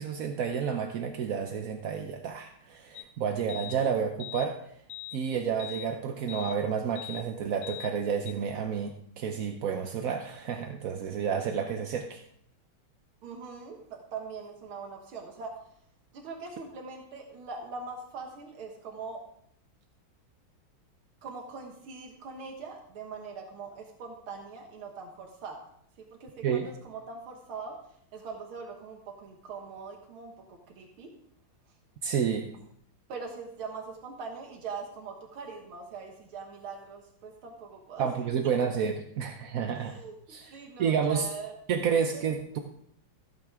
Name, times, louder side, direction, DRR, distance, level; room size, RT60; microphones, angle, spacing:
voice 1, 0.0-4.6 5.1-12.2 26.4-26.7 32.0-32.5 38.0-39.9 40.3-41.3 41.7-42.6, right 7 dB, 65° right, 5 dB, 0.9 m, -30 dB
sound 1, 2.9-3.1 3.5-3.8 4.2-4.5 4.9-5.2 5.6-5.9 6.3-6.6 7.0-7.2 7.6-7.9 8.3-8.4, left 17 dB, 65° left, 1.4 m, -41 dB
voice 2, 13.2-15.6 16.1-19.2 21.2-25.6 26.1-27.8 28.1-31.1 33.1-38.1 38.4-38.6 39.7-41.5 42.1-42.2, right 4 dB, 85° right, 1 dB, 2.2 m, -42 dB
14.5 x 8.4 x 3.6 m, 0.69 s
omnidirectional pair, 2.3 m